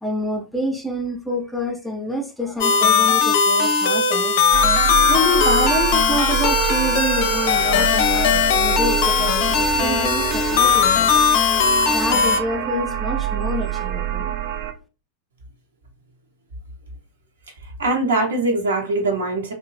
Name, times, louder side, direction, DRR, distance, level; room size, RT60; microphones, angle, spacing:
voice 1, 0.0-4.3 5.1-11.2 11.9-14.3, left 1 dB, 5° left, 0.5 m, -27 dB
sound 1, 2.6-12.4, left 6 dB, 50° left, 0.5 m, -18 dB
sound 2, 4.5-14.7, right 11 dB, 50° right, 0.4 m, -26 dB
voice 2, 17.6-19.5, right 2 dB, 65° right, 0.9 m, -22 dB
2.6 x 2.0 x 3.2 m
figure-of-eight pair, 90°, 0 cm